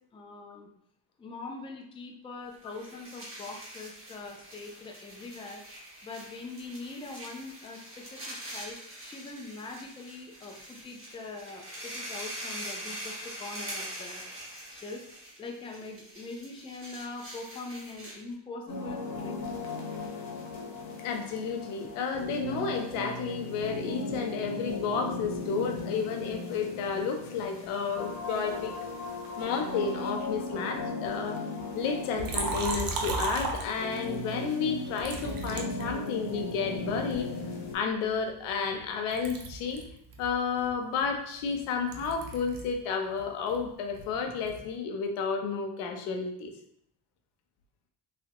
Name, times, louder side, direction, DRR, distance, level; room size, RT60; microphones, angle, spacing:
voice 1, 0.1-0.7 1.2-5.6 6.0-14.2 14.7-15.0 15.4-19.3, left 3 dB, 15° left, 1 dB, 0.3 m, -42 dB
sound 1, 2.5-18.3, right 1 dB, 25° right, 1.1 m, -43 dB
sound 2, 18.7-37.8, left 2 dB, 35° left, 0.9 m, -37 dB
voice 2, 21.0-28.7 29.4-31.4 31.7-37.3 37.7-39.8 40.2-46.5, left 5 dB, 90° left, 4 dB, 0.6 m, -31 dB
Liquid, 32.2-34.2 35.0-36.5 37.1-38.8 39.1-42.8 43.1-44.7, right 3 dB, 45° right, 0.6 m, -36 dB
3.1 x 2.1 x 2.8 m, 0.72 s
cardioid pair, 85°, 49 cm